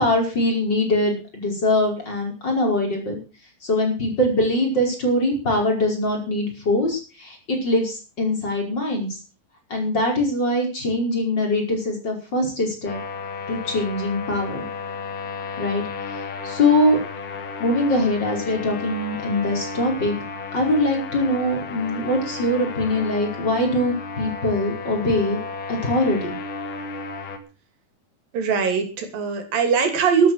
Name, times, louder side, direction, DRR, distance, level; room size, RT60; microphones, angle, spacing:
voice 1, 0.0-3.2 3.6-9.2 9.7-13.0 13.5-14.7 15.6-15.8 16.4-17.0 17.6-20.1 20.5-25.4 25.7-26.4, left 1 dB, 30° left, 2 dB, 5.6 m, -22 dB
sound 1, 12.9-27.4, left 4 dB, 70° left, 3.4 m, -33 dB
voice 2, 28.3-30.3, right 6 dB, 80° right, 7 dB, 4.8 m, -21 dB
13.0 x 12.5 x 6.4 m, 0.34 s
omnidirectional pair, 3.9 m